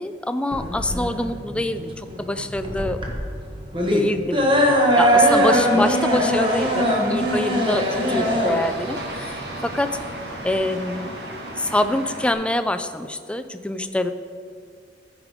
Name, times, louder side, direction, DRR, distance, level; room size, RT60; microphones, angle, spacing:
voice 1, 0.0-3.0 3.9-4.5 5.0-9.9 10.4-11.1 11.6-14.1, left 1 dB, 5° left, 9 dB, 0.3 m, -25 dB
sound 1, 0.5-10.5, equal, 30° right, 1.2 m, -21 dB
sound 2, 4.9-12.3, right 1 dB, 65° right, 1.4 m, -34 dB
14.0 x 4.9 x 4.9 m, 2.2 s
head